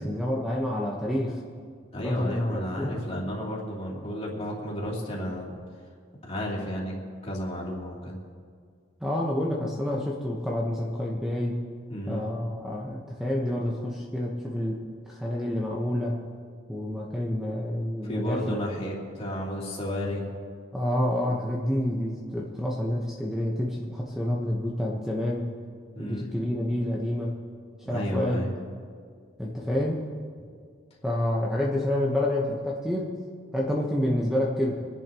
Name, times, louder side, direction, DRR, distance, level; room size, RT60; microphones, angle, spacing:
voice 1, 0.0-1.4 2.0-2.4 2.8-3.0 9.0-11.6 12.1-16.2 16.7-18.6 20.7-25.5 26.0-27.4 27.9-28.4 29.4-30.0 31.0-33.1 33.5-34.8, left 1 dB, 5° right, -3 dB, 1.1 m, -28 dB
voice 2, 1.9-5.5 6.3-6.9 7.2-8.2 11.9-12.3 18.0-20.3 25.9-26.3 27.8-28.5, equal, 30° left, -4 dB, 3.1 m, -32 dB
27.0 x 10.5 x 3.0 m, 2.1 s
head